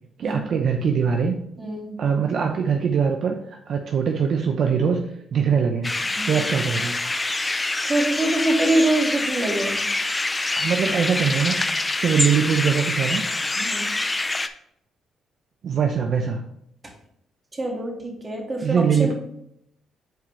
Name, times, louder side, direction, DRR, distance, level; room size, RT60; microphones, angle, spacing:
voice 1, 0.2-1.3 2.0-5.0 5.3-6.0 6.3-7.0 10.5-13.2 15.6-16.5 18.6-19.1, right 6 dB, 60° right, 3 dB, 0.7 m, -22 dB
voice 2, 1.6-1.9 6.1-6.3 7.9-9.8 13.6-13.8 17.6-19.1, right 1 dB, 25° right, 0 dB, 2.0 m, -24 dB
sound 1, 5.8-14.5, left 2 dB, 20° left, 0.6 m, -26 dB
9.1 x 4.8 x 3.2 m, 0.73 s
cardioid pair, 90°, 0 cm